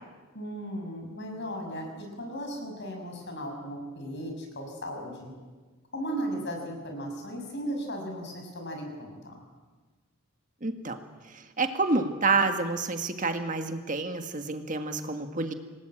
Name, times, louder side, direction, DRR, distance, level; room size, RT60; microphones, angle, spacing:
voice 1, 0.3-5.3 5.9-9.4, equal, 50° left, 3 dB, 6.2 m, -36 dB
voice 2, 10.6-11.0 11.3-15.5, right 3 dB, 35° right, 6 dB, 1.8 m, -28 dB
27.0 x 19.5 x 9.1 m, 1.3 s
head